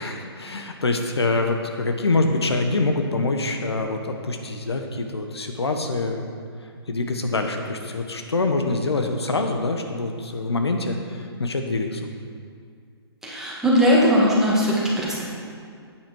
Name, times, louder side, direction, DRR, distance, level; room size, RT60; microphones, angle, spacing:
voice 1, 0.0-6.3 6.9-12.1, left 2 dB, 75° left, 4 dB, 1.0 m, -25 dB
voice 2, 13.2-15.2, equal, 5° right, -6 dB, 2.0 m, -19 dB
10.0 x 9.1 x 4.6 m, 2.2 s
figure-of-eight pair, 130°, 14 cm